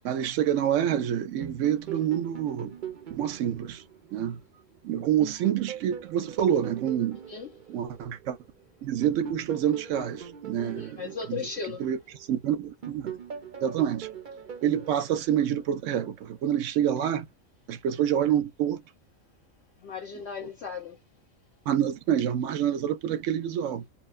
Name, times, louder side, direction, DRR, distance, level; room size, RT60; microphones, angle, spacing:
voice 1, 0.0-2.7 3.1-3.8 4.1-4.4 4.8-7.2 7.7-8.4 8.8-11.4 11.8-12.0 12.3-13.2 13.6-14.1 14.6-17.3 17.7-18.8 20.4-20.5 21.7-23.8, right 10 dB, 75° right, 0.9 m, -27 dB
sound 1, 1.4-4.7 5.2-8.5 9.0-12.3 12.8-16.1, right 8 dB, 45° right, 0.7 m, -41 dB
voice 2, 10.6-11.8 19.8-21.0, left 5 dB, 60° left, 0.9 m, -36 dB
2.8 x 2.1 x 2.4 m
omnidirectional pair, 1.4 m